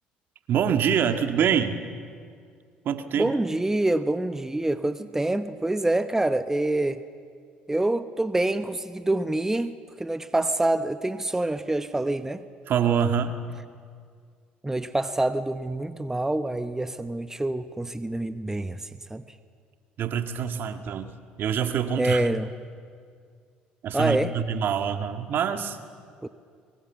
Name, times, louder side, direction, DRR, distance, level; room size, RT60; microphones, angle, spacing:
voice 1, 0.5-1.8 2.9-3.3 12.7-13.4 20.0-21.1 21.4-22.3 23.8-25.8, right 8 dB, 55° right, 8 dB, 1.7 m, -25 dB
voice 2, 3.2-7.0 7.7-12.4 14.6-19.2 22.0-22.5 23.9-24.3 26.2-26.3, right 2 dB, 10° right, 11 dB, 1.0 m, -26 dB
23.5 x 23.5 x 7.3 m, 2.1 s
hypercardioid pair, 60°, 4 cm